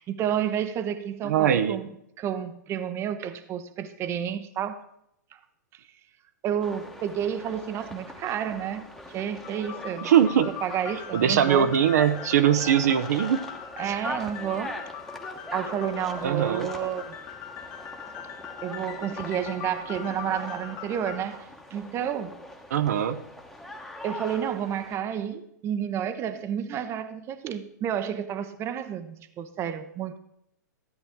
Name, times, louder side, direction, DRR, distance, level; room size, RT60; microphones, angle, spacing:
voice 1, 0.0-1.9 2.2-4.8 5.3-5.4 5.7-5.8 6.4-10.1 10.6-11.7 13.8-14.8 15.5-17.2 18.6-22.4 24.0-30.2, right 9 dB, 25° right, 0.8 m, -30 dB
voice 2, 1.2-1.8 10.0-10.5 11.1-13.4 16.2-16.7 22.7-23.2, right 9 dB, 65° right, 0.7 m, -21 dB
sound 1, 6.6-25.0, left 1 dB, 5° left, 1.1 m, -41 dB
sound 2, 9.4-21.2, left 9 dB, 40° left, 1.6 m, -41 dB
13.5 x 8.9 x 3.6 m
hypercardioid pair, 115°, 10 cm